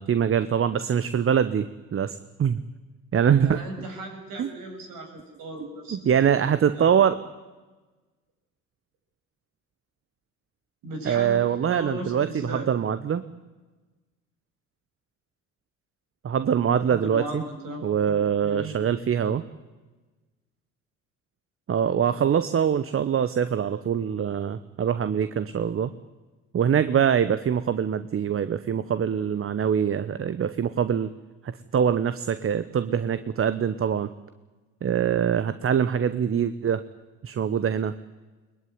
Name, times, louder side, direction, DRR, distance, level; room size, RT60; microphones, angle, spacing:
voice 1, 0.0-2.6 3.1-3.6 4.4-4.5 5.6-7.2 11.0-13.2 16.2-17.4 17.8-19.4 21.7-25.9 26.5-31.1 31.4-34.1 34.8-36.8 37.2-37.9, right 8 dB, 35° right, 13 dB, 1.0 m, -24 dB
voice 2, 3.4-6.9 10.8-11.4 11.7-12.7 16.3-18.2 18.4-18.8 22.0-22.1, right 1 dB, 65° right, 3 dB, 7.1 m, -37 dB
22.0 x 20.0 x 9.7 m, 1.2 s
hypercardioid pair, 65°, 36 cm